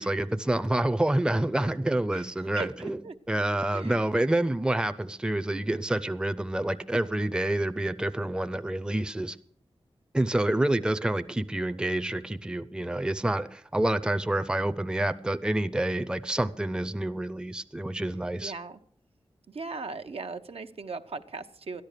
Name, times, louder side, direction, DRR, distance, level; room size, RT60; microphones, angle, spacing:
voice 1, 0.0-3.0 3.3-9.4 10.1-18.5, right 1 dB, 10° right, 10 dB, 0.5 m, -28 dB
voice 2, 2.6-3.1 3.7-4.1 18.4-18.8 19.5-21.8, right 4 dB, 75° right, 7 dB, 0.8 m, -38 dB
13.0 x 10.5 x 6.7 m, 0.62 s
wide cardioid pair, 95°, 10 cm